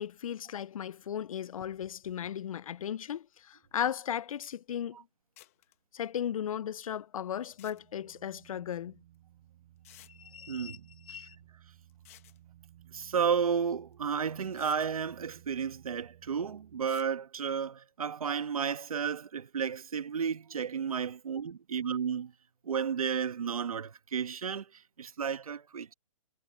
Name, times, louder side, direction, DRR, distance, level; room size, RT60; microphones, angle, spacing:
voice 1, 0.0-5.0 5.9-8.9 10.1-10.8 11.1-11.4, left 9 dB, 70° left, 0.4 m, -36 dB
sound 1, 4.1-4.2 4.4-4.5 5.4-5.7 7.4-7.8 9.1-9.2 9.8-10.1 11.9-12.4 13.9-14.0 14.5-14.9 16.8-17.1, left 17 dB, 25° left, 1.3 m, -55 dB
sound 2, 7.3-16.8, right 14 dB, 35° right, 4.0 m, -58 dB
voice 2, 10.5-10.8 11.1-11.2 12.9-22.3 22.6-25.9, right 7 dB, 80° right, 1.5 m, -32 dB
hypercardioid pair, 170°, 18 cm